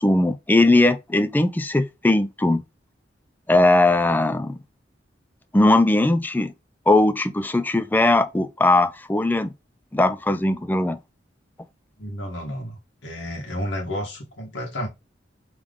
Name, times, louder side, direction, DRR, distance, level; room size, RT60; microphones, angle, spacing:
voice 1, 0.0-2.6 3.5-4.6 5.5-6.5 6.9-9.5 9.9-11.0, left 2 dB, 10° left, 0.3 m, -19 dB
voice 2, 12.0-14.9, equal, 85° left, 1.4 m, -31 dB
3.7 x 3.2 x 3.4 m
head